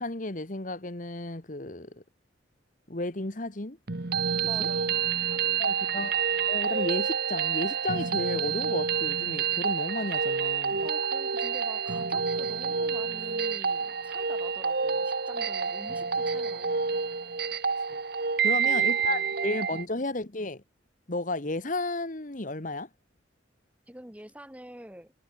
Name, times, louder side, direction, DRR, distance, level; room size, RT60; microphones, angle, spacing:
voice 1, 0.0-2.0 2.9-3.8 4.6-4.7 5.6-6.1 6.5-10.9 17.9-18.0 18.4-20.6 21.1-22.9, left 2 dB, 40° left, 1.5 m, -33 dB
sound 1, 3.9-19.8, right 6 dB, 55° right, 1.1 m, -28 dB
voice 2, 4.5-5.0 5.3-6.0 10.8-17.2 18.5-19.3 23.9-25.1, equal, 5° right, 2.3 m, -47 dB
head